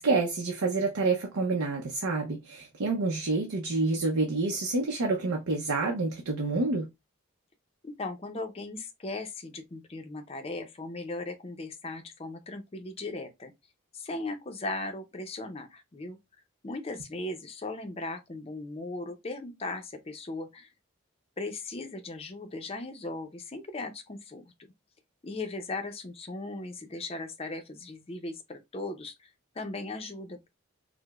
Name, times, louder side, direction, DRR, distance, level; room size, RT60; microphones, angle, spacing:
voice 1, 0.0-6.9, right 3 dB, 85° right, 0.6 m, -28 dB
voice 2, 7.8-13.5 13.9-16.2 16.6-20.7 21.4-24.4 25.2-30.5, left 2 dB, 25° left, 0.5 m, -38 dB
4.7 x 2.0 x 2.3 m
head